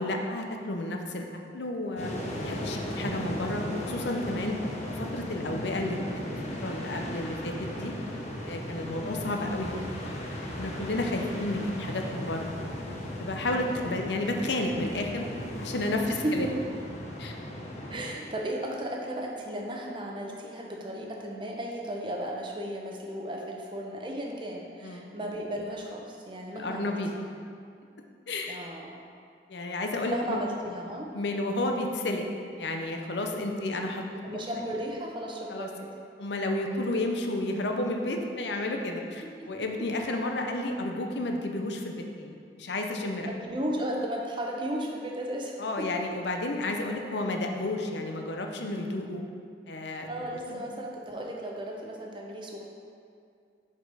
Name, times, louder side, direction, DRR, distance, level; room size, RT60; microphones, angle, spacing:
voice 1, 0.0-2.1 2.4-4.6 4.9-6.2 6.6-7.9 8.5-9.8 10.6-12.5 13.2-15.3 15.6-16.5 17.2-17.3 24.8-25.0 26.5-27.1 28.3-28.6 29.5-30.4 31.1-32.2 32.6-34.0 34.3-34.4 35.5-35.7 36.2-43.3 45.6-49.2 49.7-50.6, left 2 dB, 75° left, 3 dB, 0.7 m, -31 dB
sound 1, 2.0-18.1, equal, 40° left, 1.0 m, -36 dB
voice 2, 8.8-9.2 13.5-14.0 16.0-16.5 17.9-27.0 28.5-29.0 30.1-31.1 33.4-33.8 34.2-35.9 39.4-39.5 43.3-45.9 50.1-52.6, right 1 dB, 25° right, 0 dB, 0.8 m, -35 dB
6.6 x 5.1 x 4.8 m, 2.3 s
head